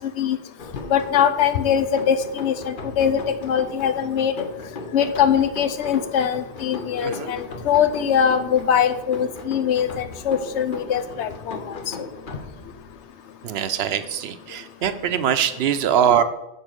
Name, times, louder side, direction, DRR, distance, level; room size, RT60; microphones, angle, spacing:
sound 1, 0.6-13.0, left 3 dB, 50° left, 1.0 m, -37 dB
voice 1, 0.9-4.3 4.9-11.9, left 8 dB, 90° left, 10 dB, 0.9 m, -22 dB
voice 2, 7.0-7.3 13.4-16.2, right 9 dB, 70° right, 11 dB, 0.8 m, -22 dB
6.8 x 4.4 x 6.2 m, 0.90 s
omnidirectional pair, 1.1 m